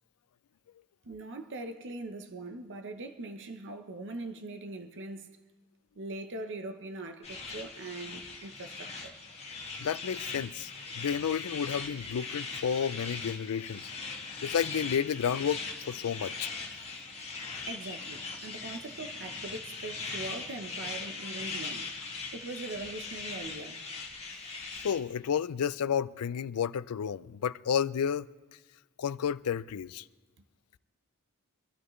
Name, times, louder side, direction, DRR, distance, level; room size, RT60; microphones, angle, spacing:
voice 1, 1.0-5.3 6.0-9.2 17.7-21.9 22.3-23.8, right 2 dB, 55° right, 0.8 m, -41 dB
sound 1, 7.2-25.0, left 4 dB, 30° left, 1.9 m, -40 dB
voice 2, 9.8-13.9 14.4-16.5 24.8-28.2 29.0-30.0, left 7 dB, 80° left, 0.4 m, -31 dB
23.5 x 12.5 x 3.2 m
head